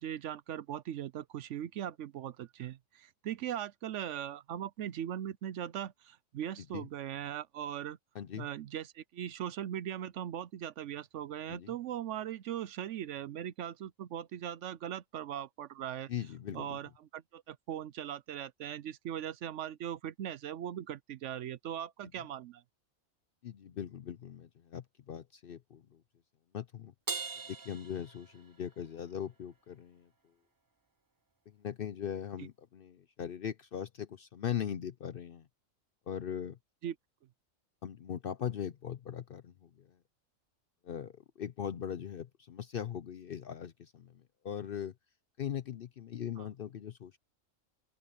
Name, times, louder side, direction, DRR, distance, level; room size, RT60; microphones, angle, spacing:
voice 1, 0.0-8.0 8.4-16.1 16.5-22.6 36.8-36.9 46.4-46.5, right 10 dB, 70° right, 0.9 m, -39 dB
voice 2, 8.1-8.5 11.5-11.7 16.1-16.8 23.4-26.0 26.5-26.9 27.5-30.1 31.5-35.5 36.1-36.6 37.8-39.9 40.8-44.9 45.4-47.2, left 9 dB, 55° left, 0.6 m, -40 dB
Crash cymbal, 27.1-28.8, right 4 dB, 25° right, 0.5 m, -40 dB
open air
omnidirectional pair, 1.4 m